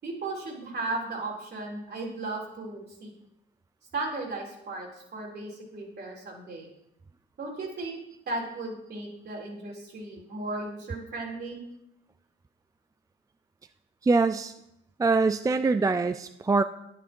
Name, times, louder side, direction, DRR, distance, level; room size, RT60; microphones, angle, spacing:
voice 1, 0.0-3.1 3.9-6.7 7.4-8.0 8.3-11.6, right 2 dB, 55° right, -1 dB, 4.1 m, -36 dB
voice 2, 14.0-14.5 15.0-16.6, right 3 dB, 15° right, 11 dB, 0.4 m, -23 dB
10.5 x 9.8 x 4.6 m, 0.84 s
cardioid pair, 90°, 20 cm